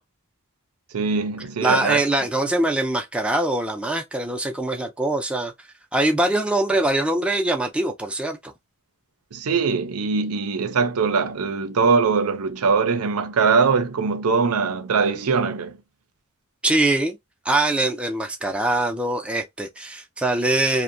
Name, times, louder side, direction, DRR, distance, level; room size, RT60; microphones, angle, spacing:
voice 1, 0.9-2.0 9.3-15.8, right 5 dB, 85° right, 0.5 m, -22 dB
voice 2, 1.6-5.5 5.9-8.5 16.6-17.2 17.5-20.8, right 2 dB, 5° right, 0.4 m, -23 dB
2.6 x 2.1 x 2.5 m
head